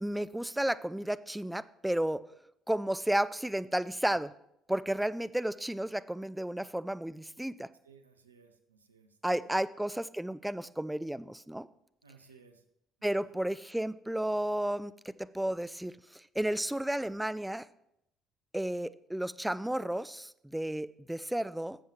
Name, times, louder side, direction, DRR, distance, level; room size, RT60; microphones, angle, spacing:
voice 1, 0.0-2.2 2.7-4.3 4.7-7.7 9.2-11.7 13.0-17.7 18.5-21.8, right 1 dB, 5° right, 15 dB, 0.4 m, -32 dB
voice 2, 7.8-9.6 12.0-12.6 13.0-13.4, right 5 dB, 85° right, 6 dB, 0.8 m, -60 dB
17.0 x 7.3 x 3.0 m, 0.79 s
figure-of-eight pair, 55°, 0 cm